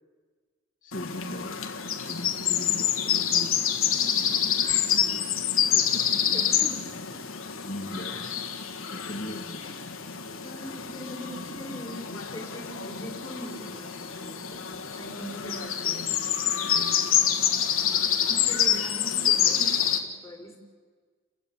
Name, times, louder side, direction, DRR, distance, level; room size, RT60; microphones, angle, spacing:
voice 1, 0.8-1.6 2.0-3.7 5.7-6.5 7.6-8.4 8.9-9.6 15.4-15.6 15.8-16.2 16.7-17.3, left 1 dB, 40° left, -2 dB, 2.2 m, -40 dB
sound 1, 0.9-20.0, left 9 dB, 75° left, 1.8 m, -27 dB
voice 2, 4.7-5.2 5.6-6.8 7.1-7.3 9.6-9.9 10.4-14.7 14.9-16.1 18.2-20.6, equal, 15° left, -2 dB, 4.3 m, -42 dB
29.5 x 16.0 x 7.3 m, 1.5 s
head